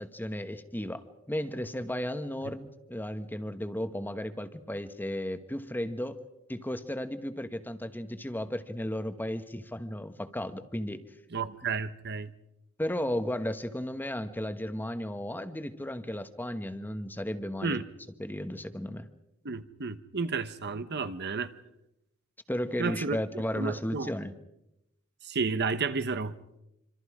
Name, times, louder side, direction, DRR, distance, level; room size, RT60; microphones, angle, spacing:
voice 1, 0.0-6.2 6.5-11.0 12.8-17.8 18.2-19.1 22.5-24.3, left 1 dB, 10° left, 1.2 m, -34 dB
voice 2, 11.3-12.3 17.6-17.8 19.4-21.5 22.8-23.2 23.5-24.1 25.2-26.3, right 4 dB, 55° right, 1.0 m, -32 dB
26.0 x 26.0 x 4.9 m
head